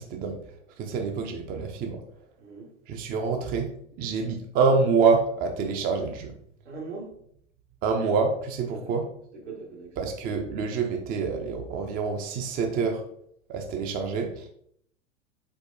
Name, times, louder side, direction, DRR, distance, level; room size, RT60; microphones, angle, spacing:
voice 1, 0.0-2.0 2.9-3.7 4.0-6.3 7.8-9.0 10.0-13.0 13.5-14.5, right 5 dB, 25° right, 4 dB, 0.5 m, -26 dB
voice 2, 2.4-2.7 6.6-7.2 8.7-8.9 9.3-10.0, right 4 dB, 70° right, -1 dB, 1.3 m, -40 dB
4.5 x 4.1 x 2.7 m, 0.68 s
figure-of-eight pair, 85°, 37 cm